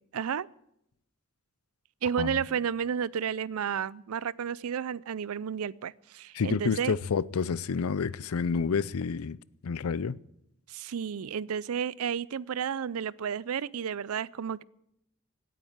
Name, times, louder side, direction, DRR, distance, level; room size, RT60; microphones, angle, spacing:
voice 1, 0.1-0.5 2.0-6.9 10.7-14.6, right 7 dB, 85° right, 0.4 m, -32 dB
voice 2, 6.3-9.4 9.6-10.2, left 5 dB, 90° left, 0.5 m, -29 dB
17.0 x 9.4 x 7.2 m
head